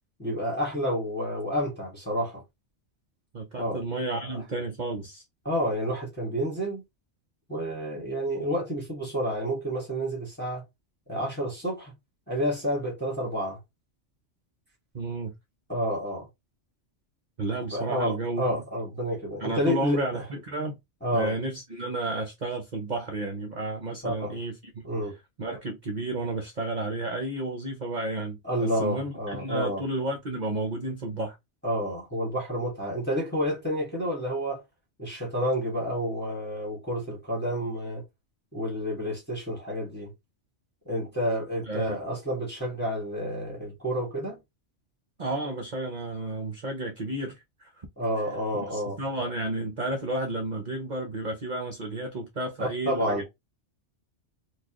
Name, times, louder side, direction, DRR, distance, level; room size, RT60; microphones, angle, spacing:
voice 1, 0.2-2.4 3.5-3.8 4.3-4.4 5.4-6.8 7.5-10.6 11.1-11.9 12.3-13.6 15.7-16.3 17.7-20.2 21.0-21.3 24.0-24.3 24.8-25.1 28.4-29.8 31.6-34.6 35.0-38.0 38.5-40.1 40.8-44.4 48.0-49.0 52.6-53.3, equal, 10° left, 1.6 m, -29 dB
voice 2, 3.3-5.2 14.9-15.3 17.4-18.6 19.4-20.8 21.1-24.6 25.0-25.1 25.4-31.4 41.6-42.0 45.2-47.9 48.5-53.3, right 2 dB, 45° right, 0.8 m, -32 dB
4.4 x 2.4 x 2.9 m
omnidirectional pair, 1.2 m